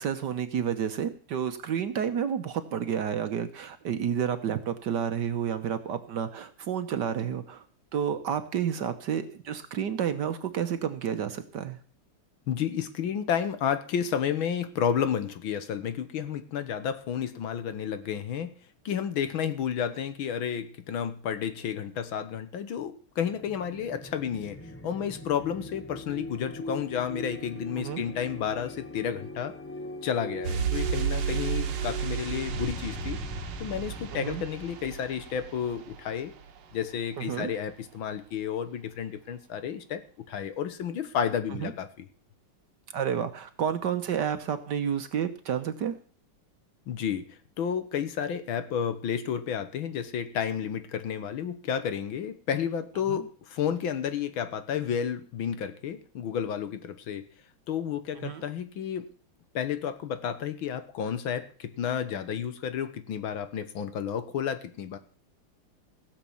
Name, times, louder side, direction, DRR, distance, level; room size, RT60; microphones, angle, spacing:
voice 1, 0.0-7.6 7.9-11.8 27.8-28.0 34.1-34.4 37.2-37.5 41.6-41.7 42.9-45.9 53.1-53.2 58.2-58.4, right 8 dB, 60° right, 9 dB, 1.3 m, -30 dB
voice 2, 12.5-18.5 18.9-29.6 30.0-33.2 33.6-36.3 36.7-40.0 40.3-42.1 46.9-47.3 47.6-57.3 57.7-59.1 59.6-65.0, left 8 dB, 70° left, 11 dB, 1.8 m, -31 dB
sound 1, 23.3-36.7, left 1 dB, 20° left, 0.3 m, -41 dB
sound 2, 30.4-37.0 37.2-37.3, right 8 dB, 80° right, 1.9 m, -33 dB
16.5 x 7.4 x 7.1 m, 0.41 s
omnidirectional pair, 2.4 m